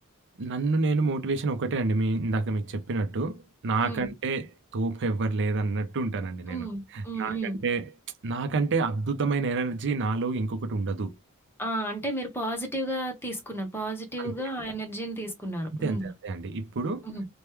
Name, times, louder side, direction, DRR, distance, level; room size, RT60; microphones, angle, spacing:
voice 1, 0.4-7.9 8.2-11.2 14.2-14.3 15.8-17.1, right 3 dB, 55° right, 0.5 m, -28 dB
voice 2, 6.5-7.6 11.6-16.1 17.0-17.3, right 1 dB, 10° left, 0.8 m, -33 dB
3.0 x 2.2 x 3.3 m
head